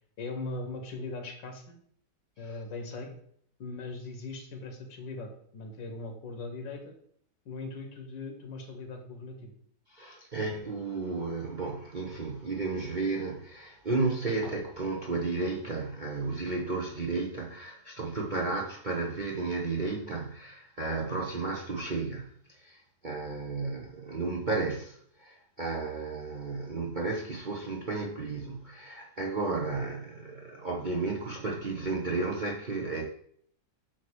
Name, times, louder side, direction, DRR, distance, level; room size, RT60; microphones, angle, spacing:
voice 1, 0.2-1.7 2.4-3.1 3.6-6.9 7.5-9.6, left 3 dB, 80° left, 1.9 m, -39 dB
voice 2, 9.9-22.3 22.6-33.0, right 3 dB, 40° right, 0.7 m, -33 dB
8.4 x 3.0 x 6.1 m
omnidirectional pair, 1.9 m